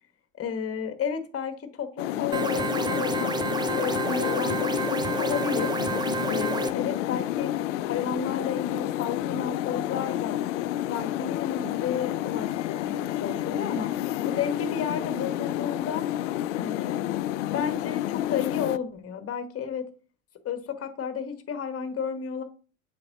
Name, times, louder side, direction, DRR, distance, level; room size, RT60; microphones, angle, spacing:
voice 1, 0.4-3.3 3.7-5.7 6.3-7.5 7.9-10.4 10.8-13.9 14.2-16.1 16.5-17.2 17.5-19.9 20.4-22.4, left 7 dB, 35° left, 8 dB, 1.5 m, -32 dB
sound 1, 2.0-18.8, left 13 dB, 65° left, 0.5 m, -30 dB
sound 2, 2.3-6.7, right 4 dB, 10° right, 0.5 m, -29 dB
7.5 x 6.2 x 3.0 m, 0.38 s
figure-of-eight pair, 70°, 40 cm